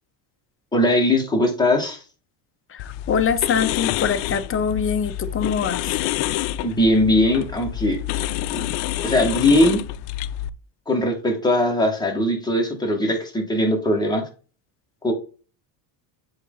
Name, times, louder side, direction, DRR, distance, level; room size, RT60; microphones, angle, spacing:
voice 1, 0.7-2.0 6.6-8.0 8.5-8.7 9.0-9.8 10.9-14.2 15.0-15.1, left 1 dB, 10° left, 2.4 m, -20 dB
voice 2, 2.7-5.8, left 7 dB, 25° left, 0.9 m, -23 dB
sound 1, 2.8-10.5, left 13 dB, 90° left, 0.6 m, -28 dB
7.9 x 4.1 x 4.0 m
cardioid pair, 120°, 48 cm